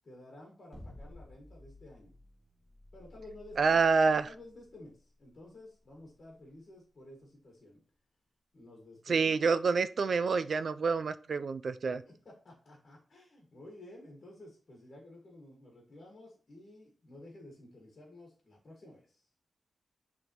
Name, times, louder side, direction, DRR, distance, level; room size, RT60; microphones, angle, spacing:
voice 1, 0.0-2.2 2.9-3.8 4.2-7.8 8.5-9.4 11.9-19.3, left 1 dB, 40° left, -1 dB, 1.8 m, -53 dB
sound 1, 0.7-6.9, left 1 dB, 10° right, 2.0 m, -54 dB
voice 2, 3.6-4.3 9.1-12.0, right 4 dB, 55° right, 12 dB, 0.4 m, -27 dB
9.9 x 3.6 x 3.0 m, 0.38 s
wide cardioid pair, 170°, 0 cm